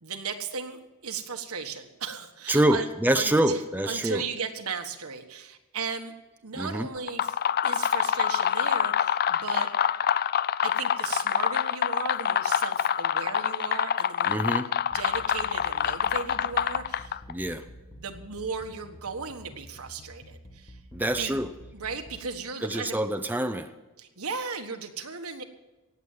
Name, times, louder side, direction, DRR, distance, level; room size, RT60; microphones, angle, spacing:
voice 1, 0.0-2.9 3.1-3.6 3.8-6.1 6.4-9.7 10.6-14.5 14.9-17.2 17.9-20.8 21.0-21.3 21.7-23.0 24.0-25.4, right 5 dB, 70° right, 6 dB, 1.5 m, -36 dB
voice 2, 2.5-4.2 6.5-6.9 14.3-14.7 17.3-17.6 20.9-21.5 22.6-23.7, right 1 dB, 10° right, 7 dB, 0.6 m, -26 dB
sound 1, 7.0-17.3, left 9 dB, 45° left, 0.4 m, -26 dB
sound 2, 14.8-22.2, equal, 30° left, 1.1 m, -48 dB
18.0 x 8.1 x 7.3 m, 1.1 s
head